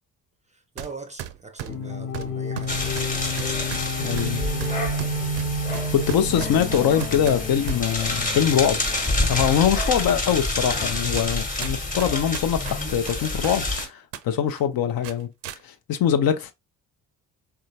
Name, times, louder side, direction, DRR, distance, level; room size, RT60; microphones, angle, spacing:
voice 1, 0.5-3.1, right 4 dB, 15° right, 0.5 m, -41 dB
sound 1, 0.8-0.9 1.2-7.8 8.5-9.2 9.6-9.7 10.5-10.6 11.2-11.3 11.6-14.2 14.5-14.6 15.0-15.6, right 12 dB, 65° right, 0.5 m, -36 dB
sound 2, 1.7-10.8, left 1 dB, 80° left, 0.8 m, -31 dB
sound 3, 2.7-13.9, left 2 dB, 15° left, 1.0 m, -28 dB
voice 2, 4.0-4.4 5.7-8.8 9.3-15.3 15.6-16.5, left 9 dB, 50° left, 0.6 m, -23 dB
3.3 x 2.7 x 2.7 m
hypercardioid pair, 40°, 48 cm